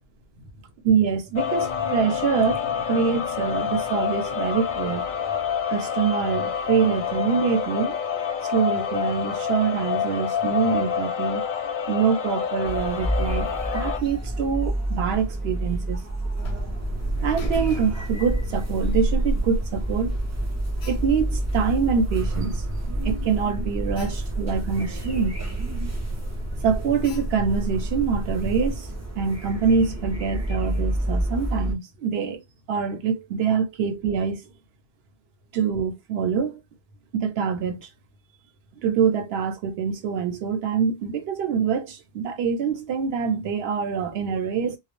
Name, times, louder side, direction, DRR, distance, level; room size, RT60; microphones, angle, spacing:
voice 1, 0.8-5.0 5.7-8.0 8.4-11.4 11.9-13.5 13.7-16.0 17.2-20.2 20.9-22.6 23.0-25.4 26.6-28.9 29.2-32.4 32.7-34.4 35.5-36.6 37.1-37.9 38.8-44.8, right 6 dB, 75° right, 0.9 m, -25 dB
sound 1, 1.4-14.0, left 7 dB, 60° left, 0.6 m, -27 dB
sound 2, 12.6-31.7, right 1 dB, 25° right, 0.3 m, -30 dB
Alarm, 16.4-28.8, right 1 dB, 80° left, 0.8 m, -31 dB
2.2 x 2.0 x 2.9 m
omnidirectional pair, 1.1 m